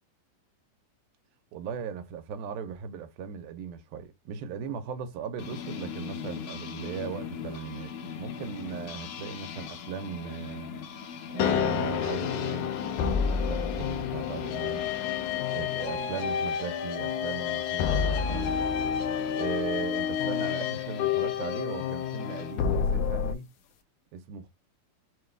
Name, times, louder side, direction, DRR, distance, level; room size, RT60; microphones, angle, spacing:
voice 1, 1.5-10.7 11.3-12.8 13.3-14.8 15.5-18.5 19.4-23.5 24.1-24.5, right 7 dB, 80° right, 2.7 m, -38 dB
sound 1, 5.4-22.5, left 7 dB, 70° left, 2.1 m, -39 dB
sound 2, 11.4-23.3, left 8 dB, 85° left, 1.7 m, -29 dB
6.5 x 2.4 x 3.3 m
omnidirectional pair, 4.2 m